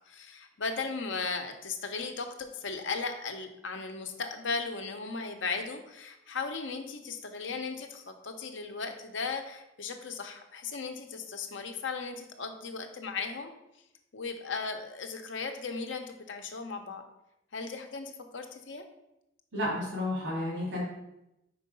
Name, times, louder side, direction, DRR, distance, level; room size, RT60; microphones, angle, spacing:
voice 1, 0.1-2.3 2.5-13.5 14.1-17.0 17.5-18.8, left 4 dB, 75° left, 5 dB, 0.8 m, -36 dB
voice 2, 19.5-20.8, left 1 dB, 85° right, -7 dB, 2.5 m, -31 dB
4.7 x 4.6 x 5.4 m, 0.88 s
head